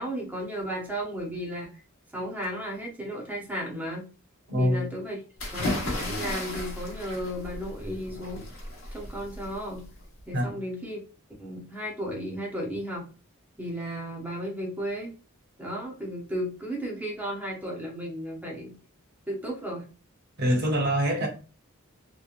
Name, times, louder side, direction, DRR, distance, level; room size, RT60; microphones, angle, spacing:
voice 1, 0.0-1.7 2.1-4.0 4.6-5.2 5.5-8.5 8.9-9.8 10.3-11.0 11.4-13.1 13.6-15.1 15.6-18.7 19.3-19.9, equal, 10° right, 0.7 m, -34 dB
voice 2, 4.5-4.9 10.3-10.5 20.4-21.3, equal, 45° right, 0.8 m, -24 dB
sound 1, 5.4-10.2, left 1 dB, 65° left, 1.1 m, -35 dB
3.0 x 2.2 x 2.4 m
head